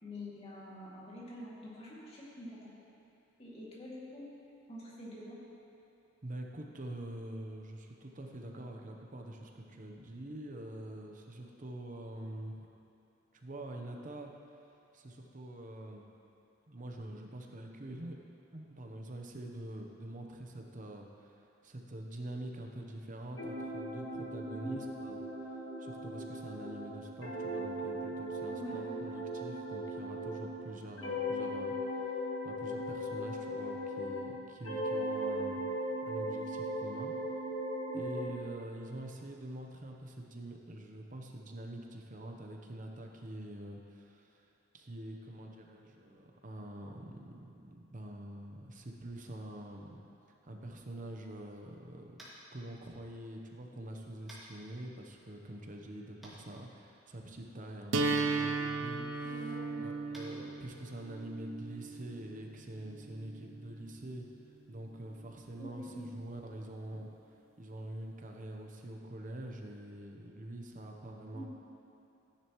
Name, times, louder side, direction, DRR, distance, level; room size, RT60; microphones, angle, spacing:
voice 1, 0.0-2.7 3.4-4.2 4.7-5.4 24.4-24.8 28.5-28.8 37.9-38.4 59.2-59.9 65.6-66.2 71.3-71.5, equal, 30° left, -7 dB, 2.4 m, -46 dB
voice 2, 6.2-12.7 13.3-14.3 14.9-16.0 16.7-18.2 18.5-32.2 32.4-37.1 37.9-44.5 44.7-50.0 50.4-52.2 52.5-64.3 64.7-67.1 67.6-71.5, right 1 dB, 45° right, 2 dB, 0.9 m, -45 dB
sound 1, 23.4-30.6 31.0-34.3 34.6-38.3, equal, 80° left, 1.7 m, -38 dB
Tap, 52.1-52.4 54.3-54.4 56.2-56.3 58.1-58.3 60.1-60.2, right 1 dB, ahead, 2.1 m, -51 dB
sound 2, 57.9-63.9, right 3 dB, 80° right, 0.6 m, -36 dB
13.5 x 10.0 x 3.1 m, 2.8 s
head